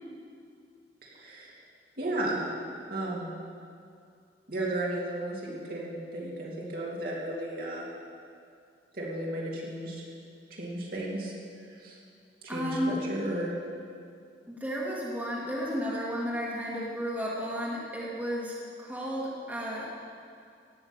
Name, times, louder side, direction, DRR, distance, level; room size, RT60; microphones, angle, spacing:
voice 1, 1.0-1.6 2.0-2.4 2.9-3.3 4.5-7.9 8.9-10.1 10.5-11.3 11.7-12.0 12.5-13.5, right 1 dB, 55° right, -5 dB, 3.0 m, -34 dB
voice 2, 12.5-12.9 14.5-19.9, equal, 10° right, -5 dB, 2.1 m, -33 dB
16.5 x 6.5 x 8.8 m, 2.4 s
head